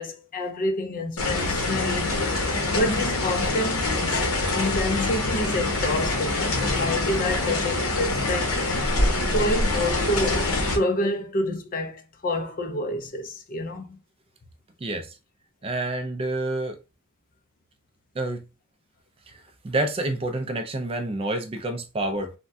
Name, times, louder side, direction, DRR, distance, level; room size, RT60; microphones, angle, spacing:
voice 1, 0.0-2.2 2.7-8.6 9.3-14.0, left 1 dB, 40° left, 0.5 m, -28 dB
sound 1, 1.2-10.8, left 2 dB, 80° left, 0.9 m, -25 dB
voice 2, 14.8-15.2 15.6-16.8 18.1-18.4 19.3-22.3, right 2 dB, 25° right, 0.4 m, -28 dB
3.3 x 2.1 x 2.6 m
head